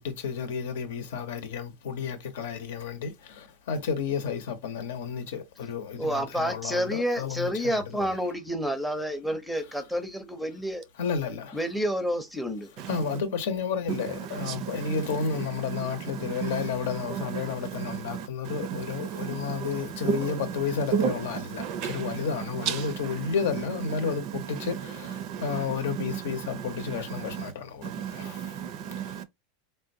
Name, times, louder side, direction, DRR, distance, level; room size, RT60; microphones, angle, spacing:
voice 1, 0.0-8.1 11.0-11.6 12.9-27.8 28.2-28.4, left 6 dB, 80° left, 0.8 m, -32 dB
voice 2, 6.0-10.8 11.5-12.7, equal, ahead, 0.5 m, -29 dB
voice 3, 19.1-19.7 20.0-20.2 20.9-21.1 21.6-22.2 25.2-25.4 27.8-29.2, right 8 dB, 45° right, 0.4 m, -31 dB
3.6 x 2.2 x 2.6 m
supercardioid pair, 140°, 0 cm